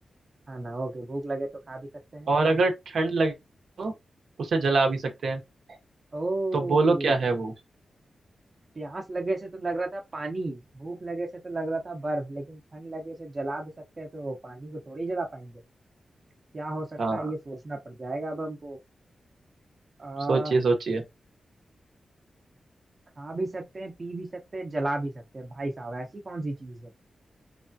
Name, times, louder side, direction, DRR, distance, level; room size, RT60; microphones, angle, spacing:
voice 1, 0.5-2.3 6.1-7.2 8.8-15.5 16.5-18.8 20.0-20.6 23.2-26.9, right 2 dB, 30° right, 0.6 m, -33 dB
voice 2, 2.3-3.3 3.8-3.9 4.4-5.4 6.5-7.5 17.0-17.3 20.3-21.0, right 3 dB, 70° right, 0.8 m, -24 dB
3.2 x 2.2 x 2.6 m
wide cardioid pair, 170°, 0 cm